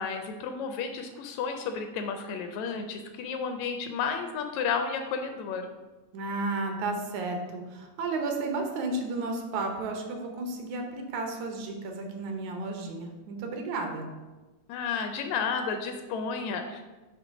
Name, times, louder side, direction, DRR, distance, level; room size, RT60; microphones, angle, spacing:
voice 1, 0.0-5.7 14.7-16.8, left 5 dB, 80° left, 6 dB, 1.7 m, -32 dB
voice 2, 6.1-14.1, right 3 dB, 75° right, 3 dB, 2.1 m, -33 dB
7.4 x 3.2 x 5.1 m, 1.2 s
omnidirectional pair, 3.3 m